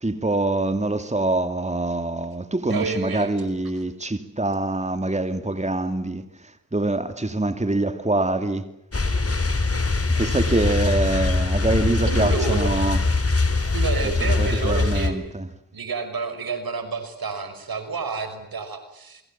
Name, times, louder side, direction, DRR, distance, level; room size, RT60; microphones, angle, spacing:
voice 1, 0.0-8.6 10.2-13.0 14.0-15.5, right 2 dB, 20° right, 2.6 m, -25 dB
voice 2, 2.7-3.3 10.5-10.8 12.0-12.7 13.6-15.2 15.7-19.2, right 4 dB, 75° right, 5.7 m, -30 dB
sound 1, 8.9-15.1, left 3 dB, 40° left, 4.2 m, -22 dB
28.0 x 23.5 x 7.4 m
cardioid pair, 45°, 36 cm